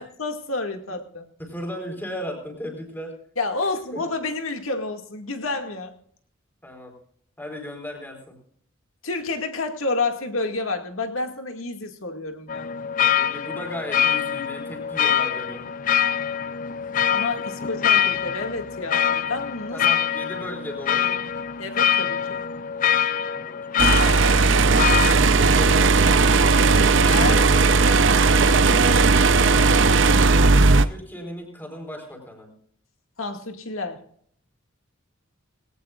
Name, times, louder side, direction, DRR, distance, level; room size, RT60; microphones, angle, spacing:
voice 1, 0.0-1.3 3.4-5.9 9.0-12.8 17.1-19.8 21.6-22.4 26.7-27.5 33.2-34.0, left 3 dB, 85° left, 5 dB, 2.1 m, -29 dB
voice 2, 1.4-3.1 3.9-4.0 6.6-6.9 7.4-8.4 13.1-15.7 19.7-21.3 23.2-23.7 25.3-26.3 28.4-30.1 30.8-32.5, left 1 dB, 10° left, 3 dB, 4.2 m, -36 dB
sound 1, 12.5-25.1, left 9 dB, 40° left, 0.5 m, -24 dB
sound 2, 23.8-30.9, right 4 dB, 60° right, 0.7 m, -17 dB
19.0 x 17.5 x 2.5 m, 0.63 s
head